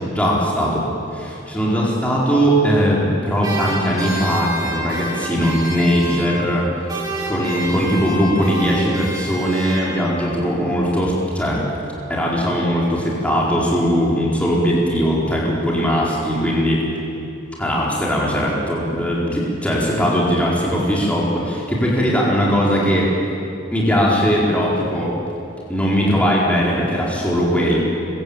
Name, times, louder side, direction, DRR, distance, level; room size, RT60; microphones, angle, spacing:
voice 1, 0.1-0.8 1.1-6.9 7.3-11.6 12.1-16.8 17.6-23.1 23.7-25.1 25.7-27.8, equal, 5° left, -5 dB, 4.6 m, -19 dB
sound 1, 3.4-6.6 6.9-10.3, right 1 dB, 20° right, 4.4 m, -29 dB
25.5 x 23.0 x 9.0 m, 2.8 s
head